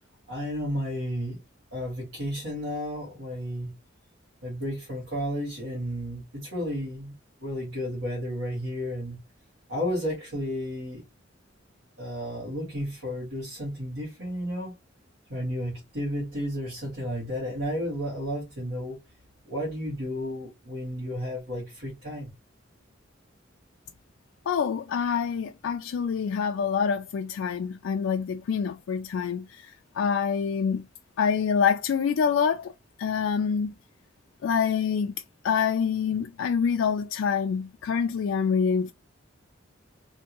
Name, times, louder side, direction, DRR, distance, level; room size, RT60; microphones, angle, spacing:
voice 1, 0.3-1.4 1.7-3.7 4.4-7.1 7.4-9.2 9.7-11.0 12.0-14.7 15.3-19.0 19.4-22.3, equal, 75° right, 1.9 m, -32 dB
voice 2, 24.5-30.9 31.2-32.7 33.0-33.7 34.4-35.1 35.4-38.9, left 6 dB, 80° left, 0.3 m, -26 dB
3.5 x 2.7 x 2.8 m
head